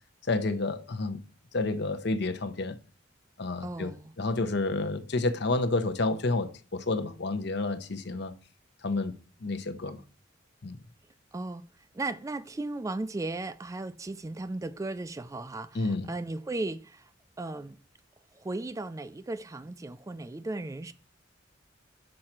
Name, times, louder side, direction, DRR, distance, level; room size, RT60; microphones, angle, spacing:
voice 1, 0.2-1.2 1.5-2.8 3.4-8.3 8.8-10.0 10.6-10.8 15.7-16.1, left 2 dB, 60° left, 0.8 m, -30 dB
voice 2, 3.6-4.1 11.3-11.7 11.9-17.1 17.4-17.8 18.4-20.9, right 2 dB, 15° right, 0.3 m, -36 dB
6.5 x 4.3 x 5.8 m
head